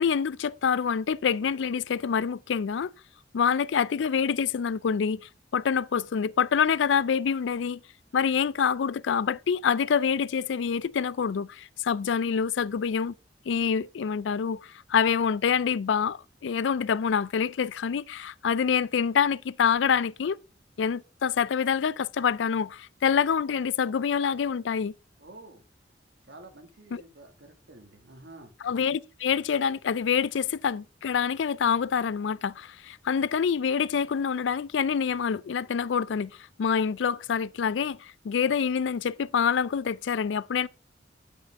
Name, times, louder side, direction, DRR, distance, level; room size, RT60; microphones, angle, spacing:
voice 1, 0.0-2.9 3.3-5.2 5.5-7.8 8.1-13.1 13.5-20.4 20.8-24.9 26.9-27.0 28.6-36.3 36.6-40.7, left 7 dB, 80° left, 0.4 m, -26 dB
voice 2, 25.2-25.6 26.3-28.5, right 2 dB, 70° right, 2.1 m, -49 dB
12.0 x 5.7 x 3.6 m
head